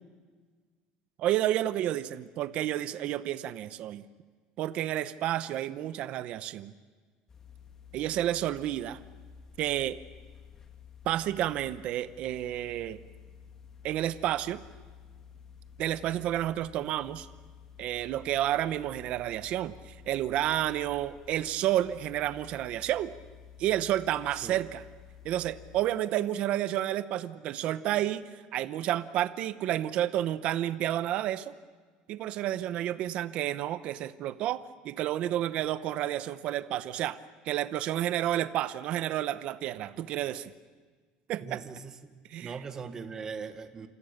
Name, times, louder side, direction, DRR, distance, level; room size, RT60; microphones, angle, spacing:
voice 1, 1.2-4.0 4.6-6.7 7.9-9.0 9.6-10.0 11.0-13.0 13.8-14.6 15.8-17.3 17.8-23.1 23.6-24.8 25.2-31.5 32.1-37.2 37.4-40.5 41.3-41.6 42.3-42.5, right 12 dB, 45° right, 13 dB, 0.9 m, -30 dB
sound 1, 7.3-25.8, left 7 dB, 20° left, 1.6 m, -52 dB
voice 2, 41.4-42.1 42.4-43.9, right 5 dB, 20° right, 8 dB, 1.5 m, -40 dB
27.5 x 27.0 x 6.7 m, 1.5 s
cardioid pair, 175°, 3 cm